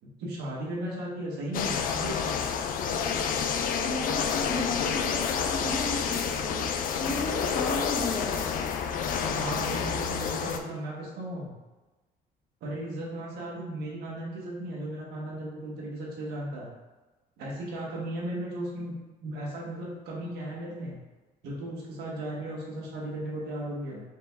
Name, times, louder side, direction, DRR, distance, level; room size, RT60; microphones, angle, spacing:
voice 1, 0.0-2.4 9.3-11.5 12.6-16.7 17.4-18.9 19.2-21.0 21.4-24.0, right 1 dB, 75° right, -3 dB, 1.3 m, -36 dB
sound 1, 1.5-10.6, left 7 dB, 55° left, 0.4 m, -29 dB
voice 2, 3.8-6.6 7.0-8.4, left 2 dB, 30° left, -1 dB, 0.8 m, -34 dB
5.0 x 2.3 x 3.4 m, 1.2 s
cardioid pair, 110°, 17 cm